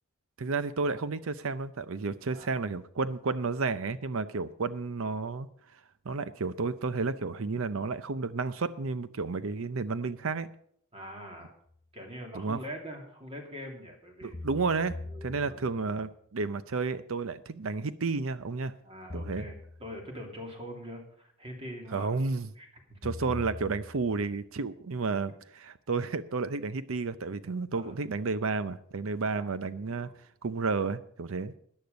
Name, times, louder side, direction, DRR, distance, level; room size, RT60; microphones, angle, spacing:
voice 1, 0.4-5.5 6.0-10.5 12.3-12.6 14.2-15.0 15.2-18.7 19.1-19.5 21.9-22.5 23.0-30.1 30.4-31.5, right 4 dB, 65° right, 14 dB, 0.6 m, -31 dB
voice 2, 10.9-11.5 11.9-14.3 15.0-15.8 18.8-22.2 22.6-23.0 27.7-27.9 29.3-30.2, equal, 25° right, 2 dB, 2.7 m, -44 dB
sound 1, 11.7-11.8 14.3-15.9 19.1-20.2 23.0-24.4, left 2 dB, 25° left, 0.9 m, -42 dB
14.0 x 9.8 x 5.2 m, 0.65 s
head